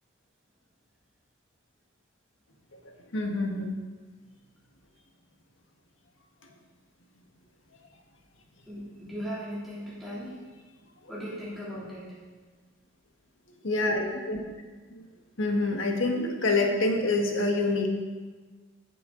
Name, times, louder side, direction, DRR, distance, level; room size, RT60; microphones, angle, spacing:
voice 1, 2.8-3.8 13.6-14.4 14.9-15.0 15.4-17.9, left 2 dB, 70° left, 2 dB, 1.5 m, -27 dB
voice 2, 8.7-10.3 11.1-12.0, equal, ahead, -10 dB, 3.1 m, -37 dB
15.0 x 7.7 x 3.9 m, 1.4 s
head